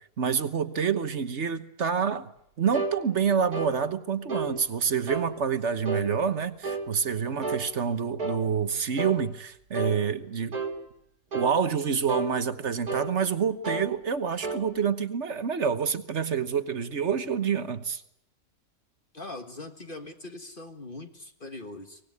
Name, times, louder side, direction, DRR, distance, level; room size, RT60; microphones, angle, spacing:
voice 1, 0.2-2.3 2.6-10.6 11.3-18.0, right 6 dB, 50° right, 11 dB, 1.4 m, -27 dB
sound 1, 2.7-3.0 3.5-3.8 4.3-4.5 5.1-5.3 5.9-6.1 6.6-6.9 7.4-7.7 8.2-8.4 9.0-9.2 9.7-10.0 10.5-10.8 11.3-11.6 12.1-12.3 12.9-13.1 13.6-13.9 14.4-14.6, right 3 dB, 85° right, 2.9 m, -31 dB
voice 2, 19.1-22.0, left 2 dB, 35° left, 6 dB, 1.8 m, -41 dB
24.0 x 19.0 x 9.6 m, 0.76 s
omnidirectional pair, 1.5 m